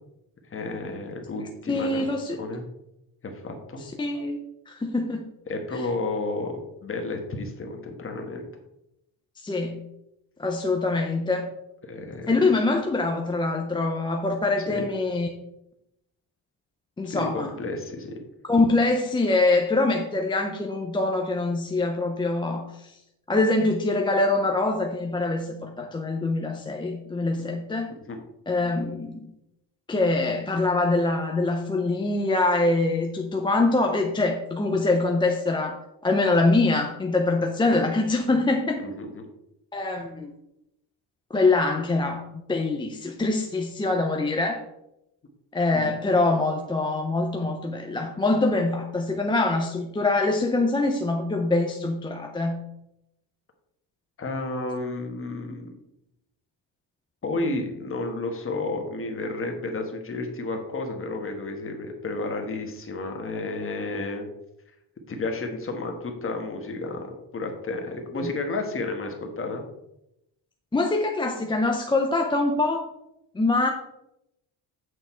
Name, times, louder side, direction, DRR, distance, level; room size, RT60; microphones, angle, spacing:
voice 1, 0.5-2.6 3.2-3.8 5.5-8.4 11.9-12.3 14.7-14.8 17.0-18.1 28.1-28.2 38.8-39.3 45.7-46.0 54.2-55.7 57.2-64.3 65.1-69.6, left 2 dB, 25° left, 3 dB, 1.3 m, -32 dB
voice 2, 1.4-2.4 4.0-4.4 4.7-5.3 5.7-5.8 9.4-9.9 10.4-11.5 12.3-15.3 17.0-17.5 18.4-23.0 23.3-28.0 28.5-29.3 29.9-35.8 36.0-38.8 39.7-40.3 41.3-44.6 45.5-52.6 68.1-68.3 70.7-72.8 73.3-73.7, left 2 dB, 10° left, 2 dB, 0.4 m, -24 dB
8.3 x 6.5 x 4.4 m, 0.85 s
cardioid pair, 175°, 47 cm